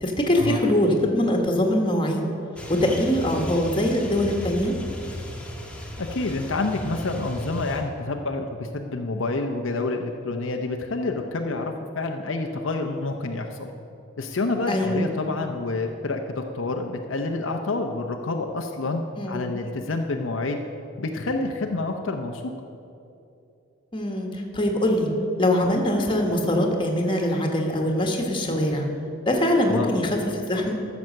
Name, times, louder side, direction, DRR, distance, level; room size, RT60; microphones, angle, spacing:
voice 1, 0.0-2.2 2.7-4.7 14.7-15.0 19.2-19.4 23.9-25.1 25.4-28.9 29.3-30.2 30.5-30.7, left 1 dB, 25° left, 2 dB, 1.5 m, -23 dB
sound 1, 2.6-7.8, left 1 dB, 5° left, 1.3 m, -36 dB
voice 2, 6.0-13.7 14.2-20.6 21.0-22.5 29.7-29.9, left 2 dB, 70° left, 3 dB, 0.8 m, -28 dB
13.5 x 7.1 x 6.5 m, 2.7 s
head